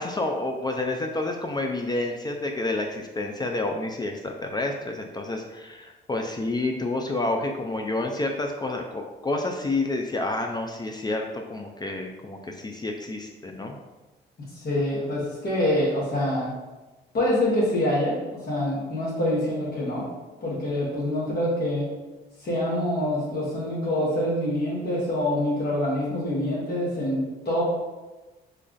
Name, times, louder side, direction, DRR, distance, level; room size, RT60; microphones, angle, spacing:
voice 1, 0.0-13.8, left 2 dB, 20° left, 2 dB, 0.3 m, -29 dB
voice 2, 14.5-16.5 17.1-18.2 18.4-20.1 20.4-21.9 22.4-27.6, left 1 dB, 55° left, -6 dB, 1.3 m, -25 dB
3.2 x 2.3 x 3.8 m, 1.2 s
cardioid pair, 90°, 20 cm